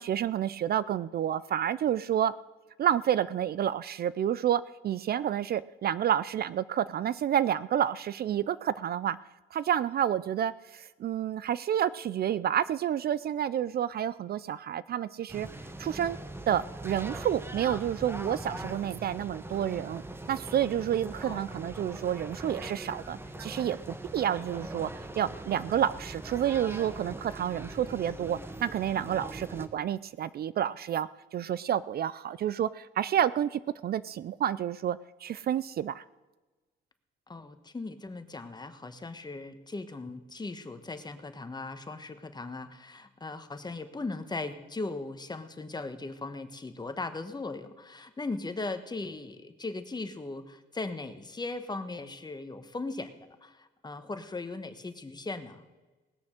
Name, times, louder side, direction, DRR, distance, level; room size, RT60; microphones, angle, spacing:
voice 1, 0.0-2.3 2.8-9.2 9.5-15.5 15.8-16.2 16.5-20.0 20.3-24.9 25.2-36.0, right 10 dB, 50° right, 17 dB, 0.4 m, -29 dB
sound 1, 15.3-29.7, right 2 dB, 10° right, 1.1 m, -41 dB
voice 2, 37.3-55.6, left 3 dB, 20° left, 9 dB, 1.2 m, -38 dB
19.0 x 7.0 x 6.5 m, 1.2 s
cardioid pair, 90°, 20 cm